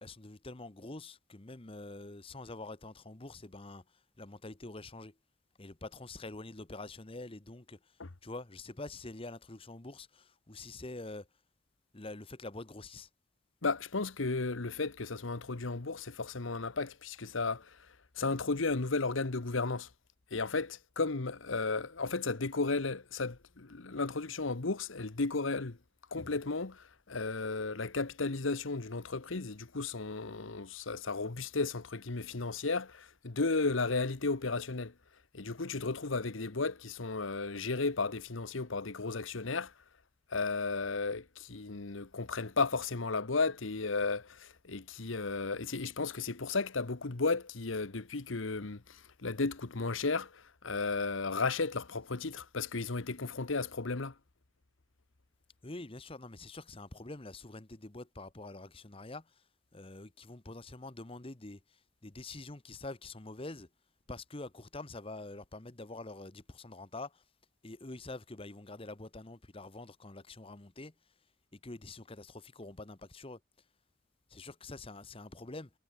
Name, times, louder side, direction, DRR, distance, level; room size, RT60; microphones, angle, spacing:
voice 1, 0.0-3.8 4.2-5.1 5.6-7.8 8.2-11.3 11.9-13.1 55.6-59.3 59.7-61.6 62.0-63.7 64.1-67.2 67.6-70.9 71.5-73.4 74.3-75.7, left 2 dB, 30° left, 1.1 m, -46 dB
voice 2, 13.6-17.8 18.2-19.9 20.3-25.8 26.1-34.9 35.3-39.7 40.3-54.1, left 3 dB, 80° left, 1.2 m, -34 dB
head